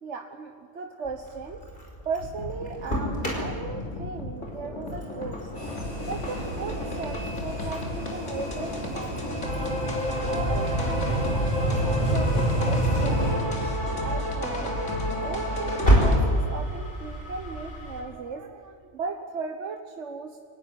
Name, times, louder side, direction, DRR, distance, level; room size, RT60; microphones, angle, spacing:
voice 1, 0.0-1.6 2.0-5.5 6.0-9.8 10.2-13.6 14.0-14.7 15.2-20.4, right 4 dB, 75° right, 4 dB, 1.4 m, -37 dB
Engine starting, 1.0-18.0, equal, 50° left, 5.2 m, -32 dB
sound 1, 2.2-16.2, left 1 dB, 90° left, 3.5 m, -32 dB
sound 2, 5.6-13.3, right 1 dB, 25° left, 8.2 m, -29 dB
25.0 x 16.5 x 9.9 m, 2.1 s
omnidirectional pair, 1.2 m